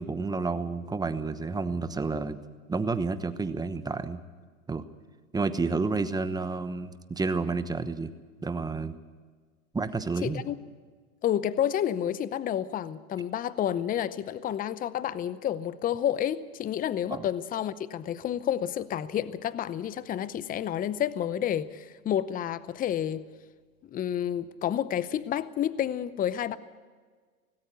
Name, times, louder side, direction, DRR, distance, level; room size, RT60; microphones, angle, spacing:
voice 1, 0.0-2.4 2.7-4.2 4.7-4.8 5.3-8.1 8.4-8.9 9.7-10.4 17.1-17.2, right 4 dB, 10° right, 1.0 m, -30 dB
voice 2, 10.2-10.6 11.2-23.2 23.9-26.6, left 10 dB, 20° left, 0.7 m, -30 dB
18.5 x 17.0 x 8.3 m
hypercardioid pair, 115°, 42 cm